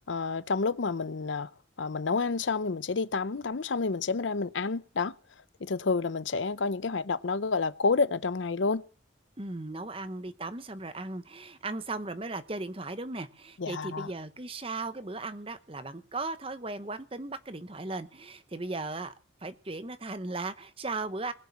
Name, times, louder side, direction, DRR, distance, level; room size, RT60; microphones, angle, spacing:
voice 1, 0.0-1.5 1.8-5.1 5.6-8.8 13.6-14.1, left 4 dB, 75° left, 0.7 m, -29 dB
voice 2, 9.4-19.1 19.4-21.3, right 3 dB, 30° right, 1.0 m, -37 dB
20.5 x 7.3 x 7.3 m
head